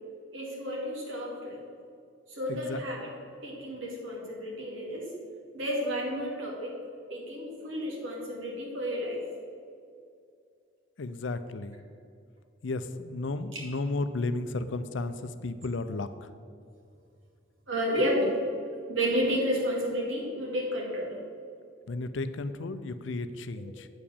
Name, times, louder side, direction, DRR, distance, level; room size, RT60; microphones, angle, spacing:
voice 1, 0.3-1.6 2.3-3.1 3.4-5.1 5.5-6.8 7.1-9.2 13.5-13.6 17.7-18.3 18.9-21.2, equal, 85° right, -3 dB, 2.4 m, -31 dB
voice 2, 2.5-2.8 11.0-11.8 12.6-16.3 21.9-23.9, left 2 dB, 75° left, 11 dB, 0.5 m, -33 dB
8.4 x 4.9 x 7.0 m, 2.4 s
head